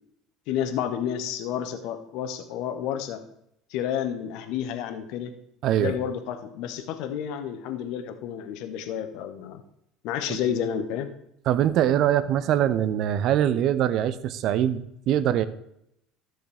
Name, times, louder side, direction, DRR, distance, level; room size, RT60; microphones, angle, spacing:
voice 1, 0.5-3.2 3.7-5.3 5.8-9.6 10.0-11.1, left 9 dB, 60° left, 8 dB, 1.1 m, -30 dB
voice 2, 5.6-5.9 10.3-10.4 11.5-15.4, right 11 dB, 55° right, 15 dB, 0.6 m, -23 dB
13.5 x 6.5 x 3.5 m, 0.78 s
hypercardioid pair, 65°, 0 cm